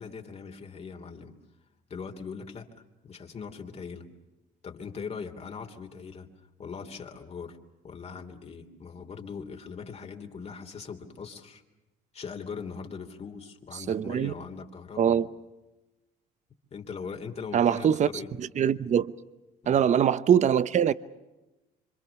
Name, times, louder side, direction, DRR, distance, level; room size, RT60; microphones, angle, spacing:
voice 1, 0.0-1.4 1.9-2.7 3.0-4.1 4.6-6.3 6.6-7.6 7.8-11.6 12.1-15.2 16.7-18.3 19.7-19.9, left 5 dB, 40° left, 3.1 m, -40 dB
voice 2, 13.8-14.3 15.0-15.3 17.5-18.1 18.4-19.1 19.7-20.9, right 9 dB, 45° right, 0.9 m, -23 dB
27.5 x 25.5 x 7.0 m
cardioid pair, 110°, 17 cm